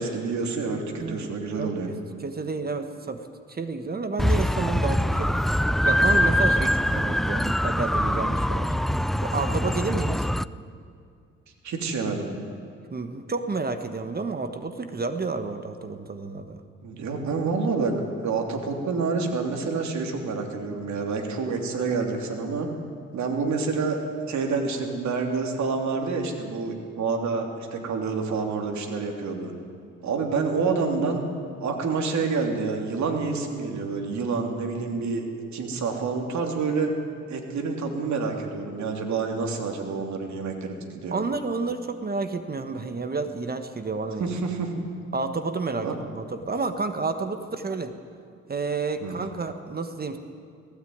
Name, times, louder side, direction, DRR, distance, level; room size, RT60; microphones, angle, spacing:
voice 1, 0.0-1.9 11.6-12.3 16.8-17.9 18.2-22.7 23.1-24.0 24.3-29.5 30.0-31.2 31.6-35.2 35.5-36.9 37.3-41.1 44.2-44.7 45.8-46.0 49.0-49.2, right 4 dB, 65° right, 2 dB, 3.2 m, -28 dB
voice 2, 1.0-3.2 3.5-8.7 9.2-10.3 12.9-16.6 41.1-44.3 45.1-47.9 48.5-50.2, right 4 dB, 30° right, 8 dB, 1.4 m, -30 dB
sound 1, 4.2-10.4, equal, ahead, 0.4 m, -23 dB
19.0 x 16.5 x 9.5 m, 2.4 s
cardioid pair, 90°, 30 cm